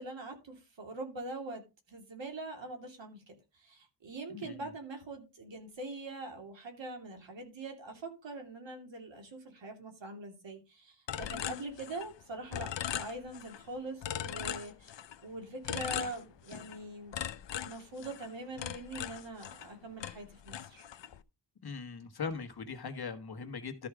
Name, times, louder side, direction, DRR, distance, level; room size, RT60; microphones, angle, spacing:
voice 1, 0.0-1.6 1.9-17.2 17.6-20.8, right 2 dB, 80° right, 3.0 m, -43 dB
voice 2, 4.3-4.7 21.6-23.9, left 5 dB, 55° left, 1.5 m, -40 dB
sound 1, 11.1-12.2 12.5-13.6 14.0-15.2 15.6-16.8 17.1-19.7 20.0-21.2, left 10 dB, 75° left, 0.7 m, -39 dB
13.0 x 4.8 x 4.9 m
wide cardioid pair, 155°, 44 cm